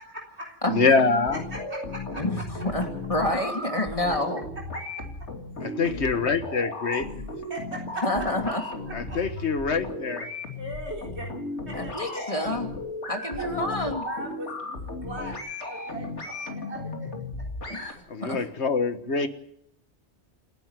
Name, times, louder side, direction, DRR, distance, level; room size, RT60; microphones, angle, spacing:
voice 1, 0.0-0.5 1.3-2.4 2.8-2.9 4.7-4.8 5.6-5.9 6.9-7.0 7.5-8.3 8.9-9.2 10.5-11.3 11.7-12.2 13.1-15.3 15.6-17.1 17.4-17.5 18.2-18.3, right 1 dB, 70° right, 1 dB, 4.1 m, -39 dB
voice 2, 0.7-1.4 5.6-7.0 8.9-10.3 18.1-19.3, left 4 dB, 70° left, 10 dB, 1.8 m, -24 dB
sound 1, 0.8-17.9, left 2 dB, 85° left, 3.1 m, -35 dB
voice 3, 2.2-4.4 8.0-8.6 11.7-12.7 13.1-14.0 17.7-18.4, left 1 dB, 30° left, 3 dB, 3.1 m, -28 dB
28.5 x 11.0 x 9.2 m, 0.72 s
omnidirectional pair, 1.2 m